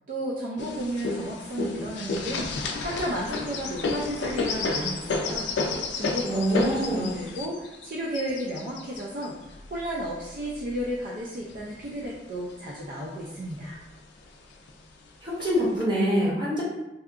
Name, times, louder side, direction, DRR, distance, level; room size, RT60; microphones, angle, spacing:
voice 1, 0.1-5.5 5.9-13.8, right 1 dB, 50° right, -4 dB, 0.3 m, -33 dB
sound 1, 0.6-10.9 11.5-12.4 12.9-13.0 13.2-13.9 14.7-14.8 15.4-15.8, left 3 dB, 80° left, 0.3 m, -31 dB
voice 2, 6.2-7.1 15.2-16.6, equal, 25° right, -6 dB, 0.8 m, -25 dB
2.7 x 2.4 x 2.4 m, 1.0 s
head